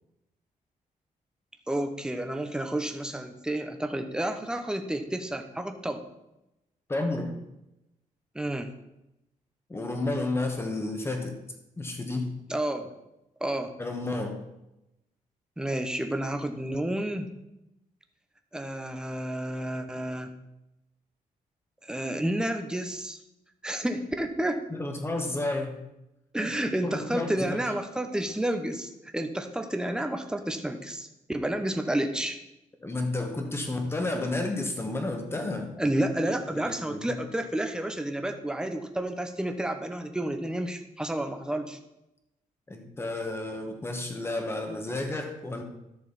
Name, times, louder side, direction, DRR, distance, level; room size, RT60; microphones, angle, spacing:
voice 1, 1.7-6.0 8.3-8.7 12.5-12.9 13.4-13.7 15.6-17.3 18.5-20.3 21.8-23.2 23.6-24.6 26.3-32.4 35.8-41.8, right 1 dB, 5° right, 6 dB, 0.9 m, -30 dB
voice 2, 6.9-7.3 9.7-11.3 11.8-12.3 13.8-14.4 24.7-25.7 26.8-27.6 32.8-35.9 36.2-37.0 42.7-45.6, left 2 dB, 15° left, 4 dB, 1.5 m, -31 dB
13.0 x 6.5 x 4.2 m, 0.91 s
wide cardioid pair, 140°, 14 cm